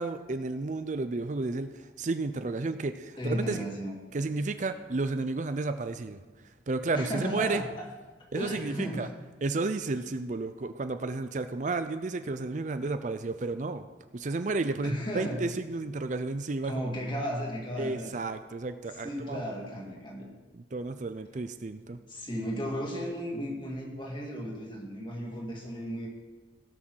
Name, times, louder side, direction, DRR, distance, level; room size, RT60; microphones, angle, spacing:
voice 1, 0.0-3.6 4.1-6.2 6.7-7.6 8.3-9.1 9.4-13.9 14.1-16.7 17.8-19.5 20.5-22.0, right 3 dB, 45° right, 10 dB, 0.5 m, -32 dB
voice 2, 3.2-4.0 6.9-7.7 8.3-9.1 14.8-15.4 16.6-18.1 18.9-20.3 22.1-26.1, equal, 30° left, -1 dB, 2.3 m, -34 dB
16.5 x 6.2 x 6.3 m, 1.3 s
head